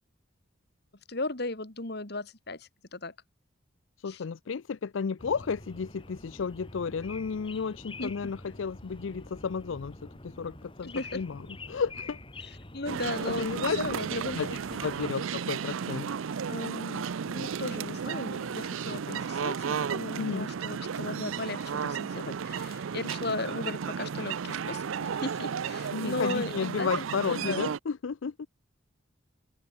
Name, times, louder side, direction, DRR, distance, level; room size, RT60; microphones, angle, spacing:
voice 1, 1.1-3.1 4.1-4.2 8.0-8.3 10.8-11.2 12.7-14.4 14.7-14.8 16.5-27.7, left 2 dB, 55° left, 2.2 m, -36 dB
voice 2, 4.0-10.0 10.2-11.4 11.7-12.2 13.3-13.8 14.3-14.5 14.8-16.1 20.2-20.5 25.9-28.3, left 5 dB, 70° left, 0.5 m, -32 dB
sound 1, 5.2-15.1, left 2 dB, 25° left, 4.7 m, -46 dB
sound 2, 12.9-27.8, right 6 dB, 80° right, 0.5 m, -34 dB
open air
head